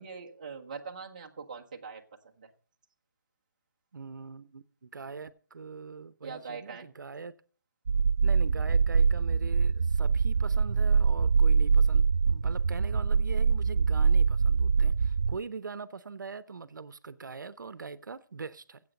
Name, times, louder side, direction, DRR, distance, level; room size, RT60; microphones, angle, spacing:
voice 1, 0.0-2.0 2.4-2.5 6.2-6.9, right 5 dB, 25° right, 1.0 m, -42 dB
voice 2, 3.9-7.3 8.2-18.8, right 5 dB, 75° right, 0.8 m, -42 dB
sound 1, 7.9-15.4, right 5 dB, 55° right, 0.4 m, -24 dB
15.0 x 8.0 x 5.3 m
hypercardioid pair, 180°, 10 cm